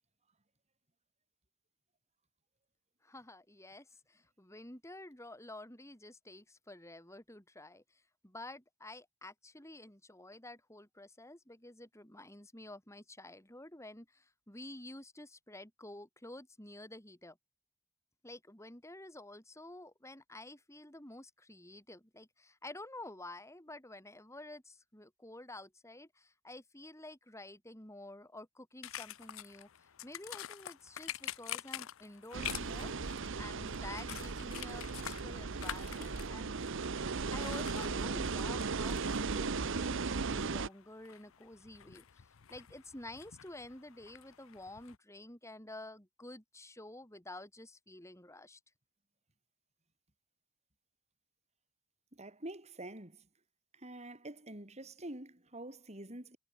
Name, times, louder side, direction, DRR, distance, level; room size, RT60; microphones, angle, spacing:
voice 1, 3.0-17.4 18.2-32.9 33.4-36.5 37.3-48.6, left 2 dB, 15° left, 4.2 m, -50 dB
sound 1, 28.8-45.0, left 11 dB, 70° left, 0.7 m, -48 dB
sound 2, 32.3-40.7, right 4 dB, 60° right, 0.8 m, -37 dB
voice 2, 52.1-53.3 53.7-56.4, right 1 dB, 30° right, 4.0 m, -47 dB
head